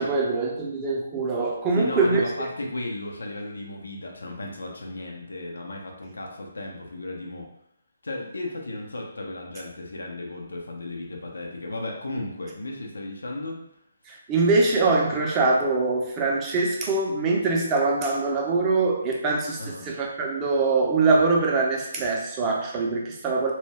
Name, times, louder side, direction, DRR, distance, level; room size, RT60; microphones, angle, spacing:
voice 1, 0.0-2.2 14.1-23.5, right 3 dB, 20° right, -2 dB, 0.5 m, -23 dB
voice 2, 1.7-7.5 8.0-13.6 19.6-19.9, left 2 dB, 80° left, 0 dB, 0.6 m, -35 dB
2.2 x 2.1 x 3.4 m, 0.75 s
figure-of-eight pair, 145°, 0 cm